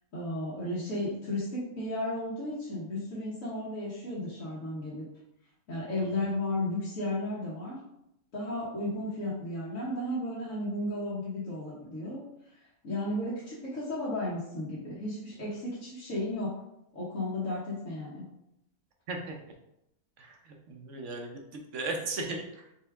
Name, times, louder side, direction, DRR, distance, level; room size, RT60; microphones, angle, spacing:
voice 1, 0.1-5.1 5.7-7.8 8.3-12.2 12.5-16.6 16.9-18.2, left 1 dB, 70° left, -9 dB, 1.5 m, -34 dB
voice 2, 6.0-6.3 19.1-19.4 20.2-22.7, right 3 dB, 65° right, 2 dB, 1.0 m, -37 dB
4.3 x 3.5 x 3.4 m, 0.83 s
omnidirectional pair, 1.4 m